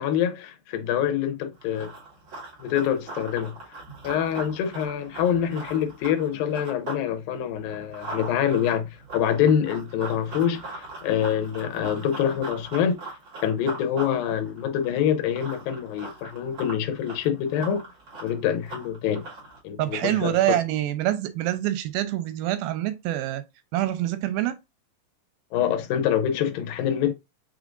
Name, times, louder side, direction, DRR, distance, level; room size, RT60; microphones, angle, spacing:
voice 1, 0.0-1.9 2.6-3.6 4.0-13.0 13.4-17.8 18.2-19.3 19.6-20.4 25.5-27.1, left 9 dB, 80° left, 2.5 m, -25 dB
Run, 1.6-7.0 7.4-19.6, right 2 dB, 40° right, 2.3 m, -40 dB
voice 2, 19.8-23.4 23.7-24.6, right 13 dB, 90° right, 2.6 m, -25 dB
6.2 x 3.4 x 2.5 m
omnidirectional pair, 4.2 m